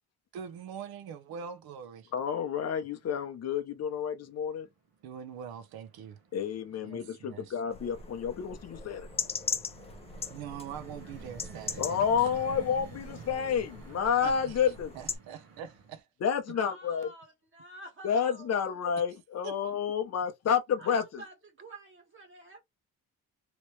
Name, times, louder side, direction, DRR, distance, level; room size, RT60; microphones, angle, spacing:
voice 1, 0.3-2.1 5.0-6.2 6.8-7.4 10.3-12.1 12.3-12.6 14.2-14.5 15.0-16.0 19.4-19.6, right 7 dB, 90° right, 0.8 m, -43 dB
voice 2, 2.1-4.7 6.3-9.1 11.8-14.9 16.2-17.1 18.0-21.2, left 7 dB, 45° left, 0.7 m, -30 dB
sound 1, 2.9-3.5 3.8-4.5 4.9-16.0, right 6 dB, 75° right, 1.1 m, -51 dB
sound 2, 7.7-15.1, left 5 dB, 20° left, 0.4 m, -40 dB
voice 3, 16.5-18.7 20.8-22.6, right 1 dB, 35° right, 1.5 m, -49 dB
3.0 x 3.0 x 3.1 m
cardioid pair, 165°, 35 cm